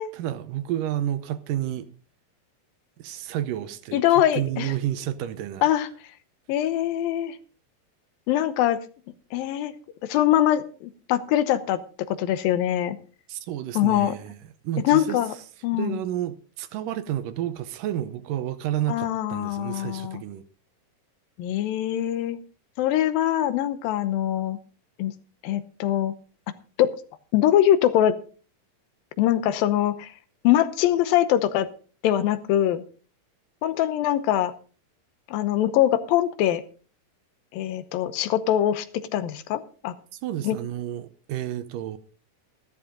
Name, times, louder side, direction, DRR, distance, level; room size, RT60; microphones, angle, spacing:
voice 1, 0.1-1.9 3.0-5.6 13.3-14.4 14.6-15.2 15.7-20.4 40.1-42.0, right 12 dB, 75° right, 2.3 m, -30 dB
voice 2, 3.9-4.7 5.6-5.9 6.5-7.4 8.3-8.8 9.3-9.7 10.1-11.8 12.1-13.0 13.8-14.2 14.8-15.3 15.6-16.0 18.9-20.2 21.4-22.4 22.8-24.6 25.0-25.1 25.4-26.1 26.8-26.9 27.3-28.2 29.2-30.1 30.4-31.7 32.0-32.8 33.6-34.5 35.3-36.6 37.5-38.9 39.1-39.9 40.4-40.6, left 12 dB, 85° left, 2.7 m, -23 dB
14.0 x 12.5 x 3.8 m
omnidirectional pair, 4.0 m